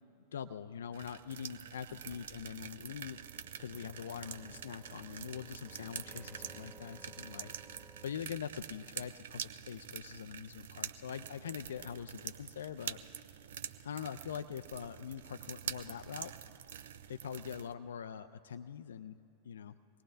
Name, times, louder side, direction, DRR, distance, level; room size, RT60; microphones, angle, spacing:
voice 1, 0.2-3.2 3.6-13.0 13.8-16.3 16.7-16.8 17.1-19.2 19.4-19.7, left 8 dB, 65° left, 10 dB, 0.3 m, -43 dB
sound 1, 0.9-17.7, right 9 dB, 60° right, 0.4 m, -46 dB
sound 2, 2.5-8.1, right 1 dB, 15° right, 1.9 m, -59 dB
24.5 x 19.5 x 2.5 m, 2.7 s
figure-of-eight pair, 90°, 0 cm